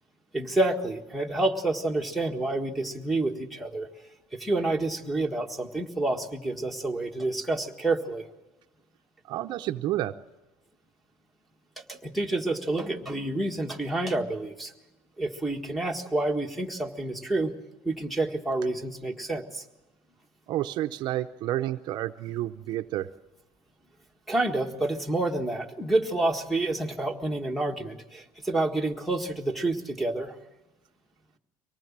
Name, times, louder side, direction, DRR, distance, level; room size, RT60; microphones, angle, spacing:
voice 1, 0.3-3.9 4.3-8.2 11.9-14.7 15.2-17.5 17.8-19.6 24.3-30.3, right 2 dB, ahead, -1 dB, 1.6 m, -28 dB
voice 2, 9.3-10.1 20.5-23.1, right 14 dB, 55° right, 8 dB, 0.7 m, -30 dB
24.0 x 18.5 x 7.4 m, 1.1 s
cardioid pair, 150°, 9 cm